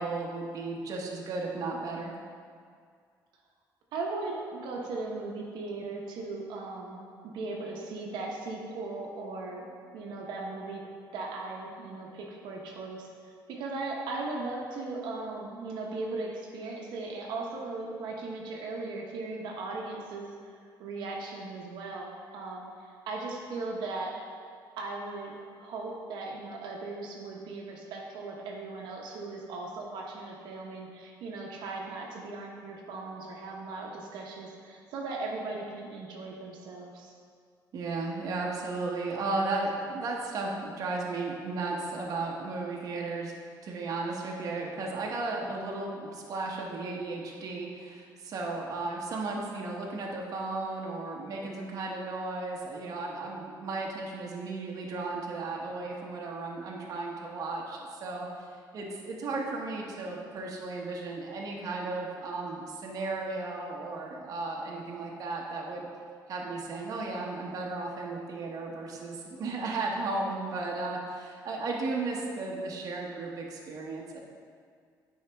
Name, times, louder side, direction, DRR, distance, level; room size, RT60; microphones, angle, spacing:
voice 1, 0.0-2.1 37.7-43.3 43.6-58.5 58.7-65.9 66.3-74.2, right 3 dB, 50° right, -2 dB, 1.0 m, -35 dB
voice 2, 3.9-7.0 7.3-9.7 9.9-10.8 11.1-24.1 24.8-25.3 25.6-37.1, right 3 dB, 80° right, -1 dB, 0.9 m, -38 dB
9.0 x 4.7 x 3.4 m, 2.1 s
cardioid pair, 140°, 8 cm